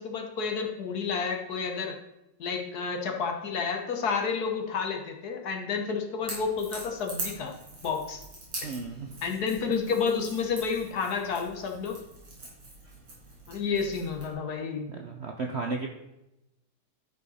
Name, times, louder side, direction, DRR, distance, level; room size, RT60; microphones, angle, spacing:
voice 1, 0.0-2.0 2.4-7.5 7.8-8.2 9.2-12.0 13.5-14.9, left 5 dB, 60° left, 3 dB, 1.5 m, -30 dB
Crackle / Crack, 6.2-14.3, right 2 dB, 85° right, 4.9 m, -43 dB
voice 2, 8.6-9.1 14.9-15.9, right 3 dB, 55° right, 2 dB, 0.7 m, -34 dB
12.0 x 5.3 x 4.2 m, 0.89 s
omnidirectional pair, 2.0 m